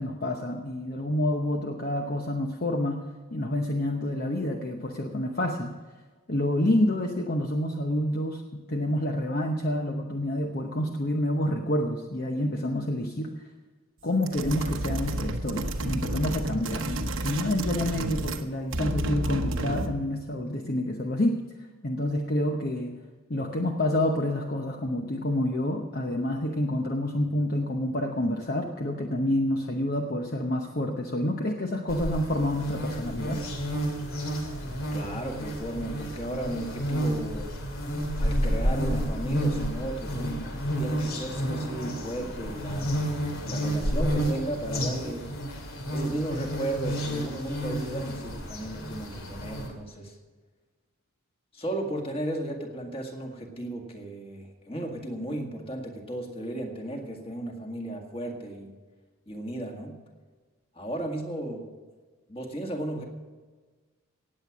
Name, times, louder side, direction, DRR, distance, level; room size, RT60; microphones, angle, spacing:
voice 1, 0.0-3.1 3.3-5.7 6.3-13.3 14.0-21.4 21.8-23.0 23.3-33.4 38.1-38.2, left 1 dB, 40° left, 3 dB, 0.9 m, -28 dB
sound 1, 14.2-18.5 18.7-20.0, right 1 dB, 65° right, 1.1 m, -31 dB
sound 2, 31.9-49.7, equal, 70° left, 2.6 m, -30 dB
voice 2, 34.9-37.5 38.2-40.5 40.8-42.9 43.4-45.2 45.9-50.2 51.5-58.7 59.3-60.0 60.8-61.6 62.3-63.0, right 1 dB, 25° left, 2 dB, 2.0 m, -35 dB
17.5 x 8.4 x 6.1 m, 1.4 s
head